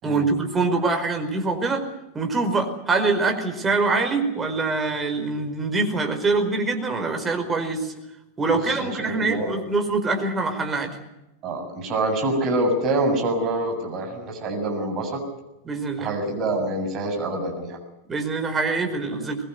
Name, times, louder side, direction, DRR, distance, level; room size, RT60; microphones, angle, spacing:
voice 1, 0.0-1.9 2.1-7.9 8.4-11.0 15.6-16.1 18.1-19.4, right 3 dB, 15° right, 5 dB, 4.9 m, -24 dB
voice 2, 8.5-9.5 11.4-15.2 16.0-17.8, right 2 dB, 35° right, 4 dB, 7.5 m, -26 dB
23.0 x 22.0 x 8.1 m, 0.94 s
figure-of-eight pair, 90°, 0 cm